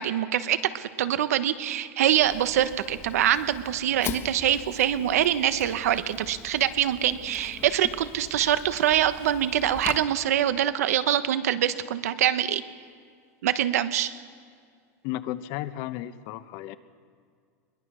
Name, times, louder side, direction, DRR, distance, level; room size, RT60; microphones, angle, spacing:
voice 1, 0.0-12.6 13.4-14.1, right 11 dB, 85° right, 12 dB, 1.1 m, -24 dB
Fire, 2.2-10.0, left 7 dB, 30° left, 1.4 m, -41 dB
voice 2, 15.0-16.8, left 14 dB, 55° left, 12 dB, 1.1 m, -34 dB
22.0 x 20.5 x 6.3 m, 2.1 s
supercardioid pair, 120°, 8 cm